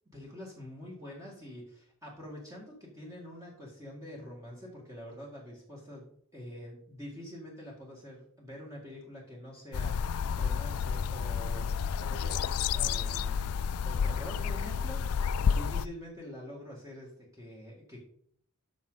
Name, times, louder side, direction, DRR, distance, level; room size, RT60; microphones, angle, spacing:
voice 1, 0.1-18.0, equal, 15° right, -3 dB, 2.1 m, -46 dB
sound 1, 9.7-15.9, left 6 dB, 80° left, 0.4 m, -30 dB
13.0 x 6.2 x 4.0 m, 0.64 s
head